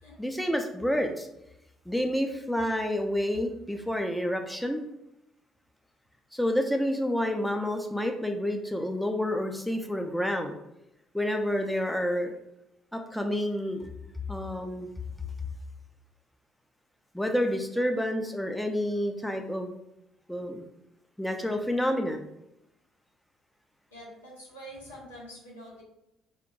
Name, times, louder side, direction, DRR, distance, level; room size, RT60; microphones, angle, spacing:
voice 1, 0.2-1.3 1.9-4.8 6.3-10.5 11.1-12.3 12.9-13.9 14.3-14.9 17.1-19.7 20.3-20.6 21.2-22.2, equal, 5° left, 4 dB, 0.4 m, -29 dB
voice 2, 23.9-25.8, equal, 85° left, -6 dB, 0.8 m, -46 dB
3.0 x 2.1 x 2.6 m, 0.83 s
figure-of-eight pair, 50°, 0 cm